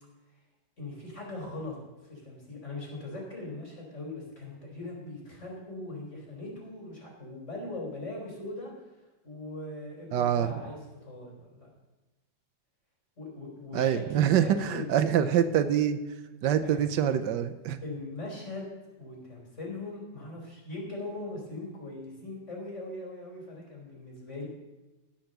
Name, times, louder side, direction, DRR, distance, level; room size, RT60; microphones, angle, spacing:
voice 1, 0.8-1.8 2.0-11.7 13.2-15.3 16.6-16.8 17.8-18.7 19.0-24.5, left 2 dB, 40° left, -2 dB, 4.4 m, -40 dB
voice 2, 10.1-10.5 13.7-16.0 16.4-17.8, right 9 dB, 85° right, 10 dB, 1.4 m, -25 dB
16.5 x 5.9 x 6.6 m, 1.1 s
omnidirectional pair, 1.8 m